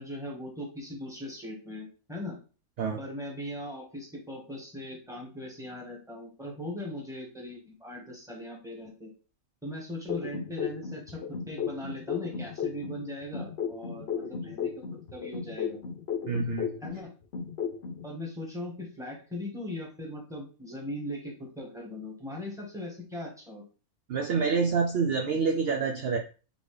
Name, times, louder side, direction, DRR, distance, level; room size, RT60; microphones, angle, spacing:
voice 1, 0.0-2.4 3.0-9.1 9.6-14.8 15.1-15.8 16.8-17.1 18.0-23.6, left 1 dB, ahead, -2 dB, 1.3 m, -39 dB
sound 1, 10.1-13.0 13.3-17.0 17.3-18.0, left 7 dB, 55° left, 0.8 m, -34 dB
voice 2, 16.2-16.7 24.1-26.2, right 5 dB, 70° right, 3 dB, 0.6 m, -27 dB
4.1 x 3.4 x 3.2 m, 0.35 s
omnidirectional pair, 1.5 m